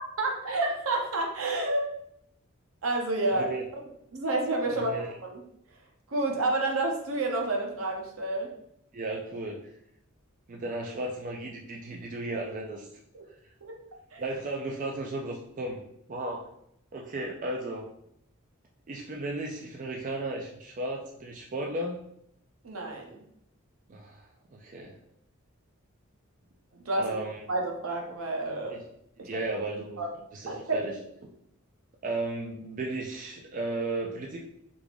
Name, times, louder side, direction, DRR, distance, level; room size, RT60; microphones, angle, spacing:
voice 1, 0.2-1.8 2.8-3.5 4.1-5.4 6.1-8.5 13.1-13.2 13.6-13.7 14.1-14.2 22.6-23.2 26.8-27.1 27.5-28.8 29.2-29.3 30.0-30.1 30.5-30.8, right 2 dB, 75° right, 1 dB, 0.7 m, -29 dB
voice 2, 4.7-5.1 8.9-9.6 10.5-12.9 14.2-15.8 16.1-16.5 16.9-17.9 18.9-22.0 23.9-25.0 27.0-27.4 28.7-28.8 29.2-30.0 30.3-30.9 32.0-34.4, right 2 dB, 40° right, -1 dB, 0.4 m, -34 dB
3.5 x 2.4 x 3.4 m, 0.75 s
head